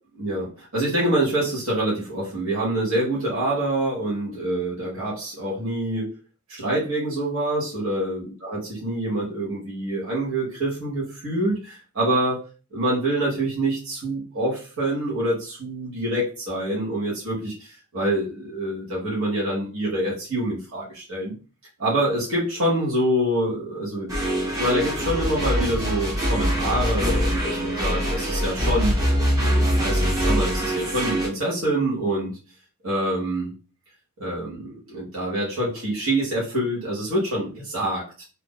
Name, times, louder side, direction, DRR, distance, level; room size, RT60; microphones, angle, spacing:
voice 1, 0.2-6.1 6.5-12.4 12.7-21.3 21.8-24.1 24.6-29.0 29.8-32.4 32.8-33.5 34.2-38.2, right 1 dB, 65° right, -6 dB, 1.3 m, -26 dB
sound 1, 24.1-31.3, equal, 15° right, 0.8 m, -23 dB
2.8 x 2.5 x 3.7 m, 0.34 s
head